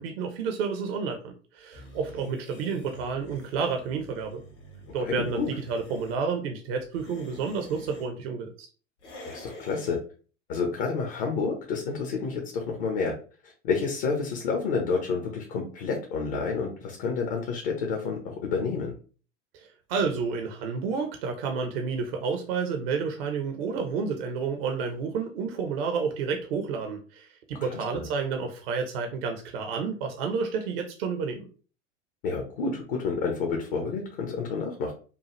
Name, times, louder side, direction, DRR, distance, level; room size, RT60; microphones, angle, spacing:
voice 1, 0.0-4.4 4.9-8.7 19.5-31.4, right 5 dB, 50° right, 4 dB, 0.8 m, -30 dB
sound 1, 1.7-6.2 6.8-8.1 9.0-10.0, left 1 dB, 70° left, 1.5 m, -47 dB
voice 2, 5.0-5.5 9.3-10.0 10.5-13.1 13.4-18.9 27.7-28.1 32.2-34.9, left 5 dB, 50° left, 2 dB, 1.0 m, -29 dB
5.4 x 2.4 x 3.1 m, 0.38 s
figure-of-eight pair, 80°, 37 cm